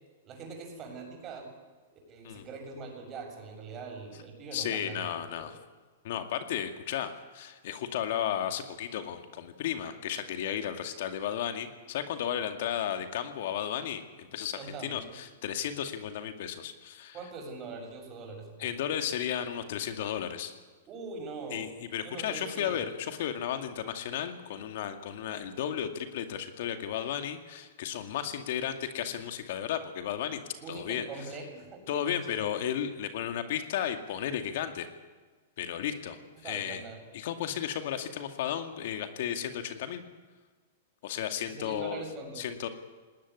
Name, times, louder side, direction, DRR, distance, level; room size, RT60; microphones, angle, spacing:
voice 1, 0.2-1.5 1.9-5.5 14.6-15.1 17.1-18.7 20.9-21.7 22.0-22.8 30.6-32.2 36.4-37.0 41.5-42.5, right 4 dB, 30° right, 3 dB, 7.3 m, -42 dB
voice 2, 4.5-5.6 6.0-17.2 18.6-20.5 21.5-30.4 30.7-31.0 31.9-34.9 35.6-36.8 37.1-40.0 41.0-42.0 42.4-42.7, left 9 dB, 65° left, 7 dB, 2.3 m, -34 dB
19.5 x 18.5 x 9.8 m, 1.4 s
hypercardioid pair, 125°, 0 cm